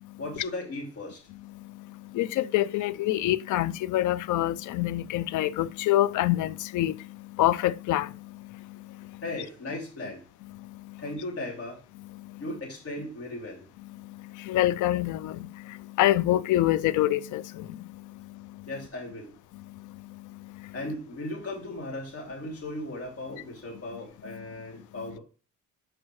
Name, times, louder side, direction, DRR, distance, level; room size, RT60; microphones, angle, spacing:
voice 1, 0.2-1.2 9.2-10.2 11.0-11.8 12.4-13.7 18.7-19.3 20.7-25.2, left 1 dB, 50° left, 2.6 m, -37 dB
voice 2, 1.5-9.2 10.5-11.0 12.0-12.4 13.8-18.7 19.5-20.8 24.3-24.4 24.8-25.2, left 14 dB, 80° left, 0.4 m, -28 dB
7.3 x 4.8 x 3.1 m
cardioid pair, 90°, 30 cm